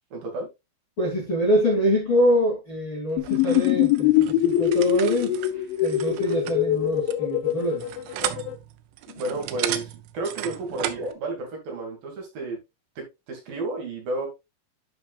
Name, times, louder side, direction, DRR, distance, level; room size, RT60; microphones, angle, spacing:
voice 1, 0.1-0.5 9.2-12.6 13.0-14.3, right 2 dB, 50° right, 3.7 m, -32 dB
voice 2, 1.0-7.8 9.1-9.2, equal, 30° left, 2.7 m, -25 dB
sound 1, 3.2-8.5, left 12 dB, 80° left, 2.8 m, -23 dB
sound 2, 3.2-11.1, right 13 dB, 80° right, 3.3 m, -35 dB
11.0 x 6.2 x 2.4 m
omnidirectional pair, 5.7 m